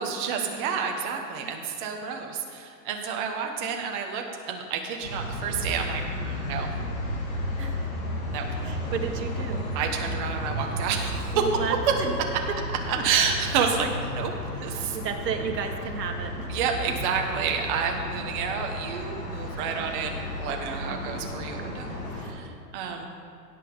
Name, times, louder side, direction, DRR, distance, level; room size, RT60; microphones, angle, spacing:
voice 1, 0.0-6.7 8.2-8.5 9.7-11.5 13.0-14.3 14.6-15.0 16.5-23.1, right 6 dB, 30° right, 2 dB, 1.3 m, -29 dB
sound 1, 5.0-22.3, left 1 dB, 55° left, 3.4 m, -33 dB
voice 2, 7.6-7.9 8.6-9.9 11.3-12.1 12.5-12.6 13.0-13.1 14.9-16.5 20.7-21.3 21.6-22.1, right 6 dB, 80° right, 4 dB, 1.8 m, -33 dB
17.0 x 8.4 x 3.9 m, 2.4 s
hypercardioid pair, 150°, 49 cm